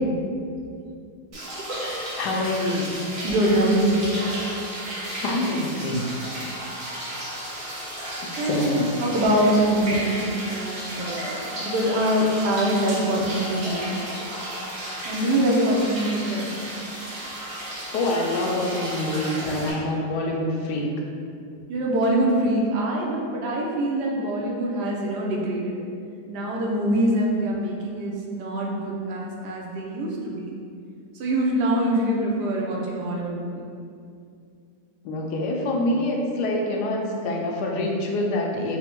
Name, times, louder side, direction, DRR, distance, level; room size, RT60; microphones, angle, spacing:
sound 1, 1.3-19.7, right 1 dB, 60° right, 1.2 m, -33 dB
voice 1, 1.5-3.0 5.2-6.1 6.5-6.6 8.2-8.9 17.9-20.9 35.0-38.8, left 1 dB, 80° left, 0 dB, 1.2 m, -26 dB
voice 2, 3.2-4.0 8.4-14.0 15.0-16.5 21.7-25.7 26.3-30.6 31.1-33.6, right 1 dB, 85° right, -3 dB, 1.3 m, -24 dB
4.1 x 2.1 x 4.4 m, 2.4 s
omnidirectional pair, 1.8 m